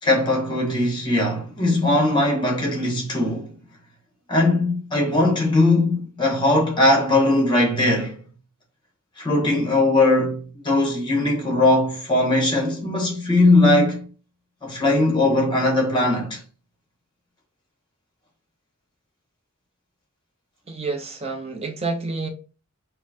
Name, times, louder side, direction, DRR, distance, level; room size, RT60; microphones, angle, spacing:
voice 1, 0.0-3.5 4.3-8.2 9.2-14.1 14.6-16.4, left 2 dB, 25° left, 1.3 m, -20 dB
voice 2, 20.7-22.3, right 3 dB, 30° right, 0.7 m, -29 dB
5.3 x 2.2 x 2.7 m
head